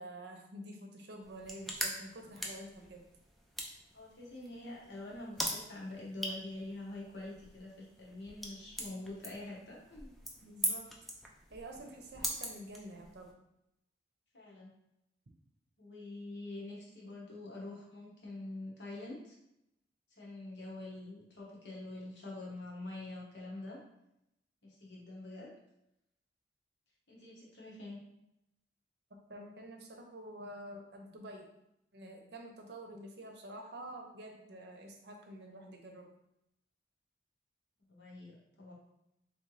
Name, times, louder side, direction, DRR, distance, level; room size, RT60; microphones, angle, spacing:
voice 1, 0.0-3.1 10.4-10.9 11.5-13.3 29.3-31.5 31.9-36.1, right 1 dB, 65° right, 2 dB, 0.7 m, -48 dB
sound 1, 1.2-13.3, equal, ahead, 0.4 m, -42 dB
voice 2, 3.9-10.1 14.3-14.7 15.8-19.4 20.1-23.8 24.6-25.5 27.1-28.0 37.9-38.7, left 2 dB, 80° left, -4 dB, 1.3 m, -45 dB
3.8 x 3.1 x 3.2 m, 0.83 s
head